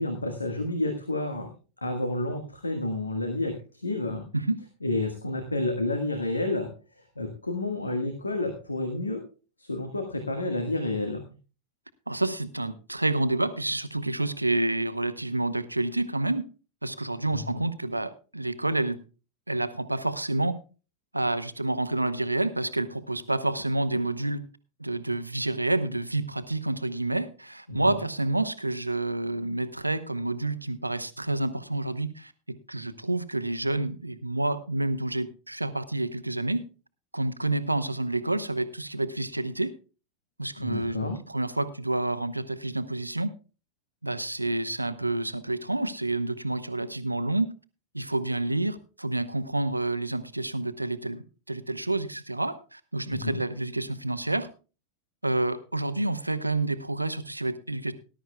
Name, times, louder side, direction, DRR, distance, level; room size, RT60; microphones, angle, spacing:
voice 1, 0.0-1.5 1.8-4.2 4.8-6.7 7.2-9.2 9.6-11.2 17.3-17.6 27.7-28.0 40.6-41.2 53.1-53.4, left 2 dB, 80° left, 5 dB, 1.5 m, -30 dB
voice 2, 12.1-16.4 16.8-19.0 19.5-20.6 21.1-24.4 24.8-36.6 37.1-39.7 40.4-43.3 44.0-47.5 47.9-54.5 55.2-57.9, right 2 dB, 85° right, 13 dB, 0.8 m, -29 dB
19.0 x 11.5 x 2.3 m, 0.34 s
figure-of-eight pair, 90°, 0 cm